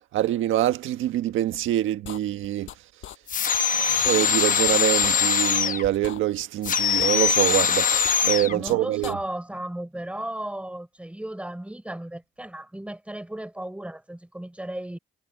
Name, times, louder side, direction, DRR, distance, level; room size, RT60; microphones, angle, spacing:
voice 1, 0.1-2.7 3.8-7.9 8.2-9.2, right 13 dB, 85° right, 1.5 m, -25 dB
sound 1, 1.5-1.6 2.0-2.8 3.0-3.2 3.5-3.6 3.9-4.7 5.0-5.1 5.5-5.6 5.9-6.7 7.0-7.1 7.5-7.6 7.9-8.7 9.0-9.1, left 12 dB, 80° left, 6.4 m, -39 dB
sound 2, 3.3-5.9 6.6-8.6, left 7 dB, 40° left, 1.1 m, -22 dB
voice 2, 3.4-4.1 8.5-15.0, right 1 dB, 5° right, 5.3 m, -35 dB
cardioid pair, 90°, 20 cm